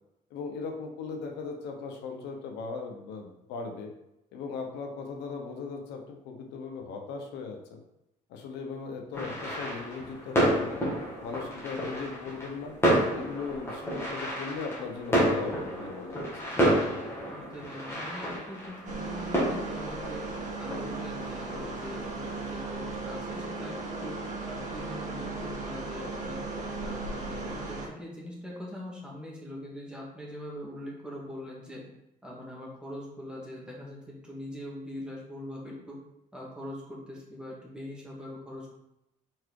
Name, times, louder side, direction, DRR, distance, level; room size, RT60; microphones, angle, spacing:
voice 1, 0.3-3.9 4.3-7.8 8.3-10.8 11.2-12.7 13.1-16.2, left 4 dB, 85° left, 3 dB, 1.0 m, -38 dB
sound 1, 9.1-22.6, right 1 dB, 15° left, 2.3 m, -30 dB
voice 2, 17.3-20.2 20.6-24.2 24.5-26.4 26.8-31.8 32.2-36.0 36.3-38.7, left 1 dB, 5° right, -4 dB, 2.0 m, -42 dB
sound 2, 18.8-27.9, right 3 dB, 50° right, 1.7 m, -36 dB
4.8 x 4.6 x 4.7 m, 0.87 s
cardioid pair, 110°, 17 cm